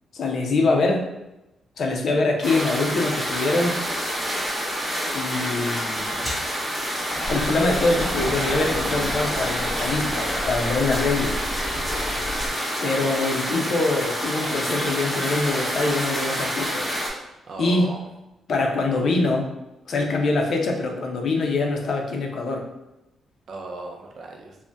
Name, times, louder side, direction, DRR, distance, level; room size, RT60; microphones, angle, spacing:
voice 1, 0.1-1.1 1.8-3.8 5.1-6.3 7.3-11.4 12.8-16.9 17.6-17.9 18.5-19.5 19.9-22.6, left 3 dB, 60° left, 2 dB, 0.5 m, -24 dB
sound 1, 2.4-17.1, equal, 10° right, 0.8 m, -28 dB
sound 2, 6.2-6.5 7.1-10.8 12.4-12.7 13.1-13.2 14.0-14.1, equal, 5° left, 1.0 m, -33 dB
sound 3, 7.2-12.5, left 1 dB, 35° left, 0.9 m, -33 dB
voice 2, 11.4-11.9 17.1-18.0 23.5-24.6, right 3 dB, 60° right, 2 dB, 0.5 m, -38 dB
2.6 x 2.1 x 3.3 m, 0.95 s
cardioid pair, 110°, 0 cm